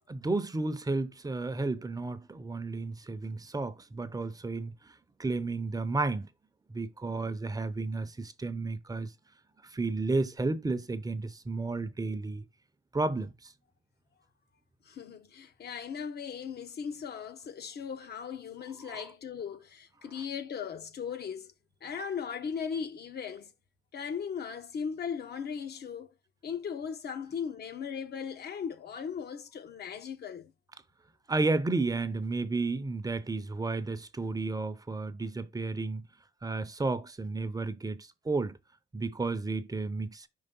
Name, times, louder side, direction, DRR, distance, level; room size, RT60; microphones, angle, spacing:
voice 1, 0.1-4.7 5.2-6.3 6.7-9.1 9.7-12.4 12.9-13.5 18.9-19.0 31.3-36.0 36.4-38.6 38.9-40.3, right 3 dB, 20° right, 0.7 m, -32 dB
voice 2, 14.8-21.5 21.8-23.5 23.9-26.1 26.4-30.5, left 7 dB, 55° left, 0.9 m, -38 dB
5.6 x 3.2 x 5.3 m
cardioid pair, 90°, 20 cm